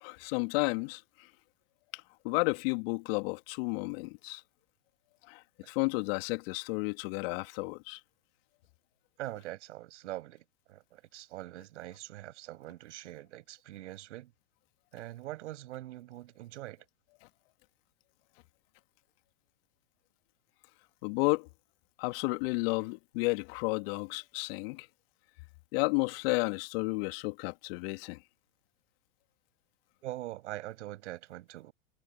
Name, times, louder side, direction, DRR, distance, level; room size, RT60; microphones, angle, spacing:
voice 1, 0.0-1.0 2.2-4.4 5.3-5.4 5.7-8.0 21.0-21.5 22.0-24.9 25.7-28.2, left 28 dB, 45° left, 2.7 m, -32 dB
voice 2, 9.2-14.3 14.9-16.8 30.0-31.7, right 15 dB, 60° right, 7.8 m, -43 dB
hypercardioid pair, 115°, 40 cm